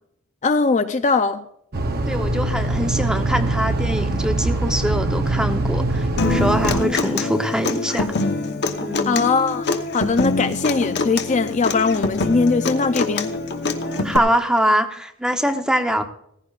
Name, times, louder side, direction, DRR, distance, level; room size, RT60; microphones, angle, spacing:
voice 1, 0.4-1.4 9.1-9.7 9.9-13.3, left 4 dB, 35° left, 0.4 m, -20 dB
sound 1, 1.7-6.8, right 2 dB, 45° right, 0.8 m, -22 dB
voice 2, 2.1-8.1 8.8-9.3 13.8-16.0, equal, 5° right, 0.8 m, -23 dB
Human voice / Acoustic guitar, 6.2-14.2, left 3 dB, 50° left, 0.9 m, -24 dB
18.5 x 15.0 x 2.4 m
head